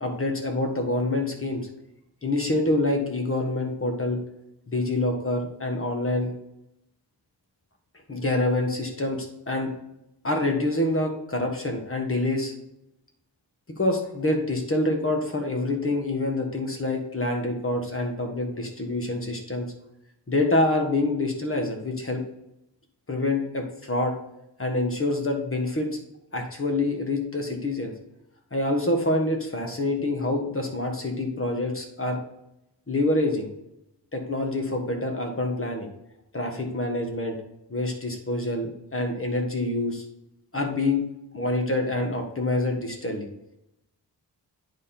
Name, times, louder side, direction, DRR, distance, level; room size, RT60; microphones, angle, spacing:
voice 1, 0.0-1.7 2.2-4.2 4.7-6.3 8.1-9.7 10.2-12.5 13.8-19.7 20.3-22.2 23.1-24.1 24.6-25.9 26.3-27.9 28.5-32.2 32.9-33.5 34.1-35.9 36.3-37.4 37.7-40.0 40.5-41.0 41.3-43.3, left 2 dB, 30° left, 3 dB, 1.5 m, -26 dB
9.5 x 3.7 x 4.4 m, 0.83 s
wide cardioid pair, 75°, 44 cm